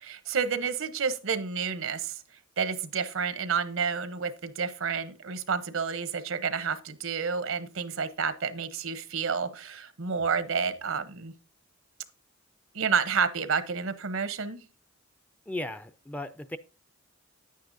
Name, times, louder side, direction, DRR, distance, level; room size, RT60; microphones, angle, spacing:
voice 1, 0.0-2.2 2.6-11.3 12.7-14.6, right 6 dB, 80° right, 0.8 m, -30 dB
voice 2, 15.5-16.6, left 1 dB, 5° left, 0.4 m, -36 dB
9.7 x 9.3 x 2.6 m
head